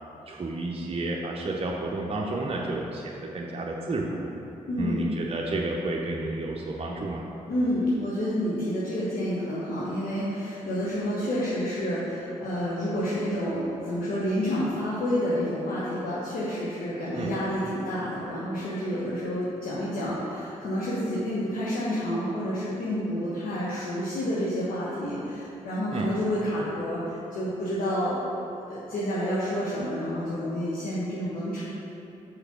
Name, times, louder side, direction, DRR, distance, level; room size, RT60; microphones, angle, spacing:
voice 1, 0.3-4.3 4.8-7.3 17.1-17.3 25.9-26.1, right 2 dB, 40° right, -2 dB, 0.7 m, -31 dB
voice 2, 4.7-5.0 7.5-31.6, equal, 70° left, -8 dB, 1.2 m, -29 dB
5.1 x 4.8 x 5.9 m, 2.8 s
hypercardioid pair, 40°, 15 cm